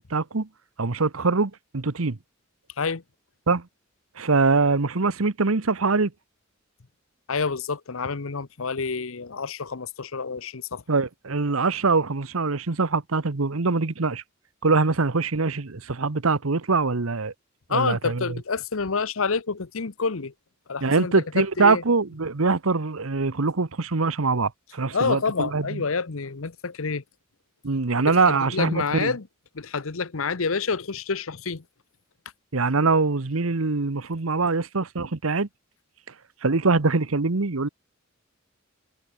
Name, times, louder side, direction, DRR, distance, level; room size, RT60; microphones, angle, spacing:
voice 1, 0.1-0.5 0.8-2.2 3.5-3.7 4.2-6.1 10.9-14.2 14.6-17.3 17.7-18.4 20.8-25.8 27.6-29.1 32.5-35.5 36.4-37.7, right 4 dB, 85° right, 1.1 m, -23 dB
voice 2, 7.3-10.8 17.7-20.3 20.7-21.8 24.9-27.0 28.1-29.3 29.5-31.6, left 4 dB, 75° left, 1.0 m, -28 dB
head